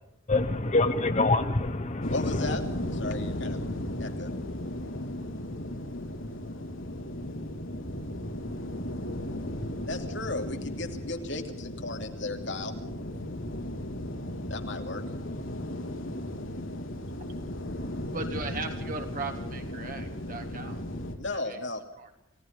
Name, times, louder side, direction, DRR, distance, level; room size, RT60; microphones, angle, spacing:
voice 1, 0.3-2.5, left 2 dB, 35° left, 1.1 m, -26 dB
sound 1, 2.0-21.2, left 1 dB, 80° left, 3.5 m, -35 dB
voice 2, 2.1-2.6 2.9-3.6 4.0-4.3 9.9-12.7 14.5-15.0 21.2-21.8, left 2 dB, 65° left, 2.9 m, -35 dB
voice 3, 18.1-20.8 21.5-21.6 22.0-22.1, right 3 dB, 45° right, 3.6 m, -37 dB
29.0 x 18.0 x 5.3 m
head